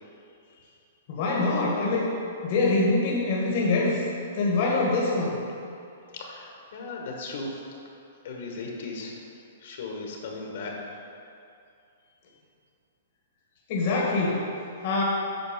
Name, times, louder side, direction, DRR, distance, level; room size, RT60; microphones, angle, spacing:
voice 1, 1.1-2.1 2.4-4.0 4.3-5.4 13.7-14.4 14.8-15.0, left 3 dB, 45° left, -3 dB, 1.3 m, -24 dB
voice 2, 6.1-7.6 8.2-9.1 9.6-10.7, left 3 dB, 65° left, 0 dB, 1.5 m, -36 dB
8.3 x 5.4 x 5.2 m, 2.5 s
hypercardioid pair, 155°, 0 cm